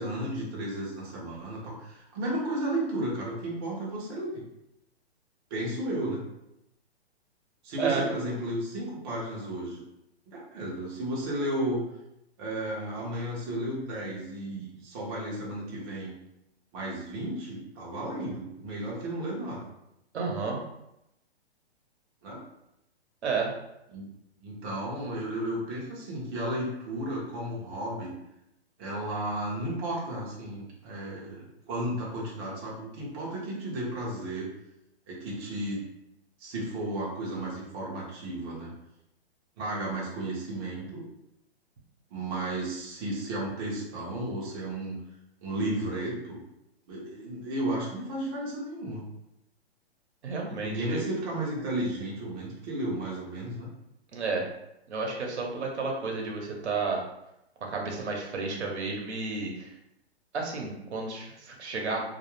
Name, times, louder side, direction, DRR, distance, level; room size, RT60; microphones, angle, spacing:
voice 1, 0.0-4.4 5.5-6.2 7.6-9.8 10.3-11.8 12.4-16.2 16.7-19.7 22.2-22.4 23.9-24.1 24.4-28.1 28.8-34.5 35.1-35.8 36.4-38.7 39.6-41.0 42.1-45.0 45.4-46.4 46.9-49.1 50.6-53.7, right 1 dB, 25° right, -5 dB, 0.5 m, -33 dB
voice 2, 20.1-20.6 23.2-23.5 50.2-51.0 54.1-54.5 54.9-57.0 57.6-59.7 60.3-62.0, right 4 dB, 90° right, 0 dB, 0.8 m, -31 dB
2.3 x 2.1 x 3.0 m, 0.84 s
hypercardioid pair, 150°, 33 cm